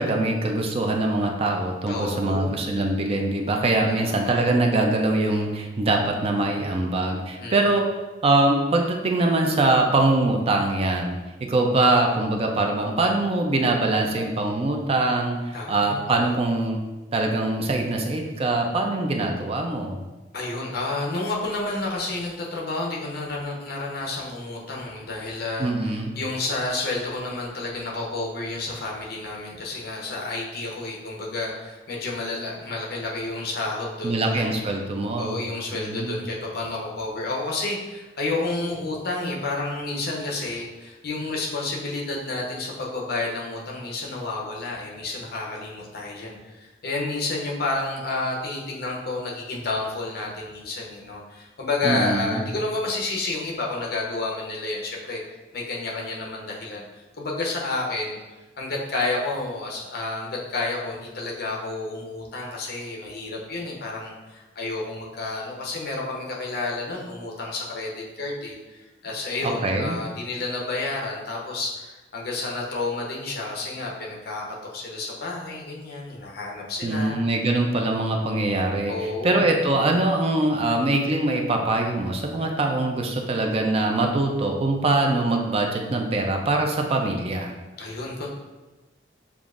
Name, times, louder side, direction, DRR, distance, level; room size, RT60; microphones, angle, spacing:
voice 1, 0.0-7.9 8.2-16.8 17.1-20.0 25.6-26.2 34.0-35.4 35.7-36.2 51.8-52.4 69.4-70.0 76.8-87.5, right 2 dB, 35° right, 2 dB, 0.4 m, -23 dB
voice 2, 1.9-2.6 3.9-4.4 7.4-7.7 15.5-16.3 20.3-34.5 35.2-55.2 55.5-58.2 58.6-74.4 74.7-77.2 78.9-79.5 87.8-88.3, left 2 dB, 60° left, -2 dB, 0.8 m, -30 dB
6.8 x 2.4 x 2.4 m, 1.2 s
head